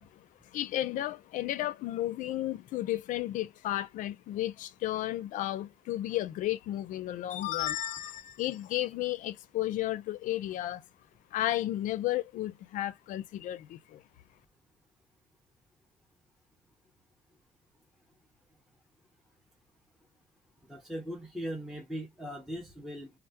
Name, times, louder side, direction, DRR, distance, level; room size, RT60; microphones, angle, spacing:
voice 1, 0.0-10.8 11.3-14.0, left 14 dB, 60° left, 0.4 m, -33 dB
voice 2, 20.7-23.2, equal, ahead, 0.5 m, -39 dB
3.2 x 2.0 x 2.7 m
cardioid pair, 150°, 15 cm